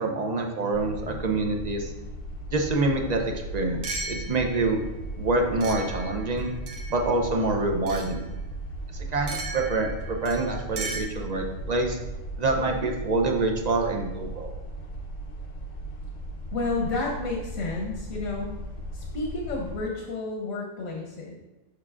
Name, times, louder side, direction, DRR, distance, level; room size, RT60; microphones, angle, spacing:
voice 1, 0.0-1.9 2.5-3.2 3.5-4.8 5.2-6.5 6.9-8.2 8.9-12.0 12.4-14.5, right 2 dB, 50° right, 2 dB, 0.5 m, -26 dB
sound 1, 0.7-19.8, right 1 dB, 45° left, 0.6 m, -37 dB
sound 2, 3.2-3.3 3.8-4.7 5.6-7.1 7.9-8.2 9.3-11.0, right 3 dB, 85° right, 1.3 m, -36 dB
voice 2, 16.5-18.6 18.9-21.4, left 3 dB, 80° left, -2 dB, 1.3 m, -31 dB
6.6 x 5.9 x 2.4 m, 1.0 s
omnidirectional pair, 1.4 m